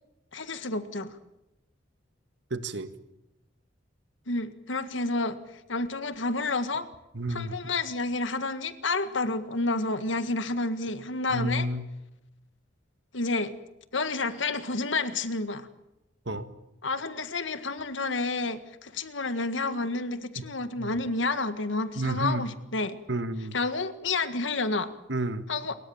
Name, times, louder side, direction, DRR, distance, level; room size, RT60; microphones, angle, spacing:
voice 1, 0.3-1.2 4.3-5.4 5.7-6.9 7.3-11.7 13.1-13.5 13.9-15.7 16.8-23.0 23.5-24.9 25.5-25.7, left 3 dB, 80° left, 11 dB, 1.8 m, -30 dB
voice 2, 2.5-2.9 7.1-7.5 11.3-11.9 16.3-16.5 20.4-20.5 20.8-21.0 22.0-22.5 23.1-23.6 25.1-25.4, right 1 dB, 65° right, 10 dB, 1.9 m, -30 dB
29.5 x 22.5 x 7.2 m, 0.92 s
head